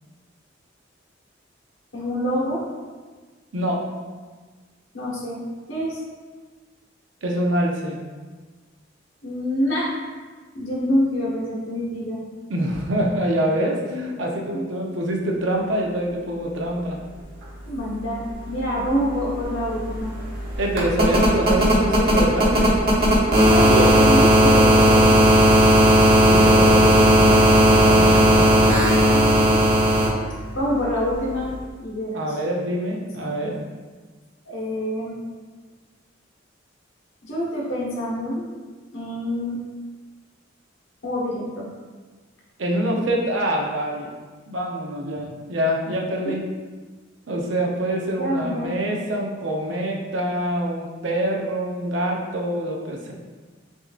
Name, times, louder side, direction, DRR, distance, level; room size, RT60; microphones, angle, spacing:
voice 1, 1.9-2.6 4.9-6.0 9.2-9.9 10.5-12.2 13.8-14.1 14.5-14.6 17.7-20.1 23.2-25.3 29.1-29.6 30.5-31.5 31.8-32.3 33.2-33.6 34.4-35.2 37.2-38.6 38.9-39.6 41.0-41.7 45.0-45.3 46.2-46.4 48.2-48.8, equal, 80° left, -5 dB, 1.3 m, -26 dB
voice 2, 3.5-3.8 7.2-8.0 12.5-17.0 20.6-22.8 25.7-28.6 32.1-33.6 42.6-44.1 44.5-46.4 47.3-53.1, right 1 dB, 70° right, 0 dB, 0.7 m, -25 dB
sound 1, 18.9-19.0 19.2-30.1 31.5-31.6, equal, 55° right, 1.1 m, -16 dB
6.2 x 2.6 x 2.5 m, 1.4 s
head